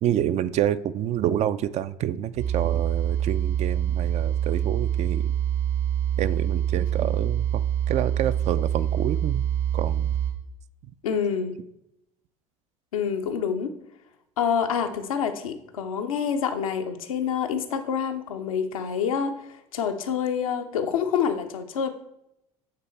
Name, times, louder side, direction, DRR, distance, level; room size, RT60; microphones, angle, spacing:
voice 1, 0.0-5.3 6.2-7.6 7.9-9.5 9.7-10.1, right 11 dB, 40° right, 14 dB, 0.4 m, -28 dB
sound 1, 2.3-10.3, right 10 dB, 80° right, 2.7 m, -25 dB
voice 2, 11.0-11.6 12.9-13.7 14.4-21.9, left 7 dB, 75° left, 5 dB, 0.8 m, -27 dB
8.8 x 3.7 x 4.2 m, 0.81 s
figure-of-eight pair, 65°, 18 cm